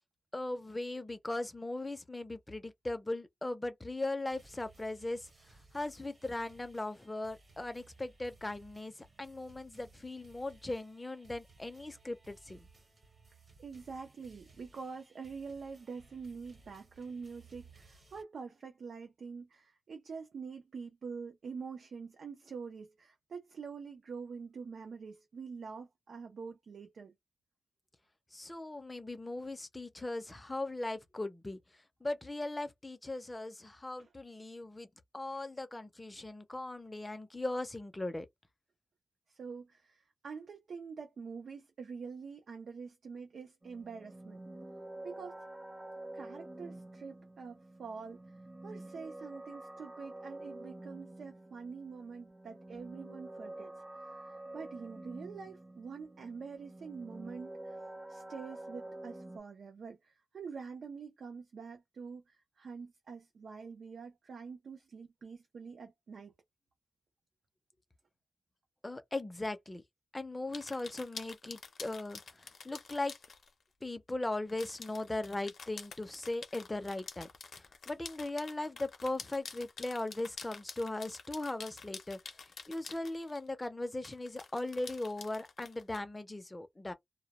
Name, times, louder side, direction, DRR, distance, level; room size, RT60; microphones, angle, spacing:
voice 1, 0.3-12.7 28.3-34.9 35.1-38.3 68.8-69.8 70.1-73.1 73.8-77.3 77.6-86.9, left 2 dB, 15° left, 0.5 m, -39 dB
sound 1, 4.3-18.2, right 3 dB, 45° right, 0.9 m, -61 dB
voice 2, 13.6-27.1 34.0-34.1 35.3-35.4 39.3-44.4 45.0-45.4 46.1-57.8 58.1-66.3, right 5 dB, 75° right, 0.5 m, -46 dB
sound 2, 43.6-59.4, right 1 dB, 20° right, 0.7 m, -48 dB
sound 3, 70.5-73.5 74.5-83.5 84.0-86.0, left 5 dB, 80° left, 0.5 m, -48 dB
2.2 x 2.0 x 2.8 m
wide cardioid pair, 140°, 0 cm